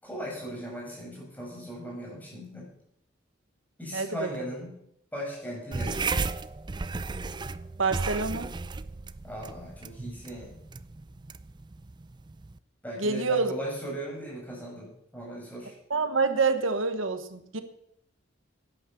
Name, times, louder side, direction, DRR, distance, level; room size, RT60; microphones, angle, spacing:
voice 1, 0.0-2.7 3.8-4.8 5.1-6.1 9.2-10.6 12.8-15.7, equal, 10° left, -3 dB, 6.3 m, -38 dB
sound 1, 5.7-12.6, right 4 dB, 25° right, 0.4 m, -34 dB
voice 2, 7.8-8.5 13.0-13.5 15.9-17.6, right 4 dB, 85° right, 10 dB, 1.2 m, -26 dB
11.0 x 10.5 x 7.1 m, 0.75 s
head